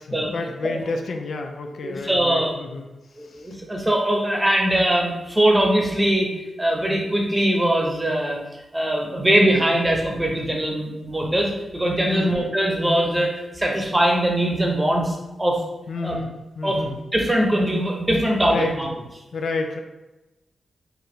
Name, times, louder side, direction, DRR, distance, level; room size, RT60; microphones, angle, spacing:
voice 1, 0.0-2.9 12.1-12.5 15.9-16.9 18.5-18.8 19.3-19.8, left 3 dB, 75° left, 4 dB, 0.4 m, -29 dB
voice 2, 1.8-2.5 3.2-6.3 6.6-8.4 8.7-15.6 16.0-16.2 16.6-18.9, right 1 dB, 10° right, -1 dB, 0.8 m, -21 dB
4.5 x 2.6 x 3.1 m, 1.0 s
wide cardioid pair, 110°, 0 cm